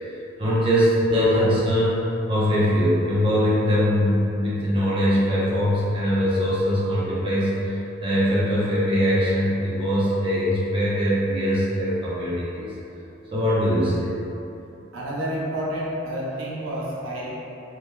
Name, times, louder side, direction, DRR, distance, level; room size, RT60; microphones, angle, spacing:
voice 1, 0.4-12.7 13.3-14.1, equal, 25° right, -9 dB, 0.7 m, -22 dB
voice 2, 14.9-17.3, right 1 dB, 90° right, -5 dB, 0.5 m, -29 dB
3.3 x 2.9 x 2.2 m, 2.9 s
head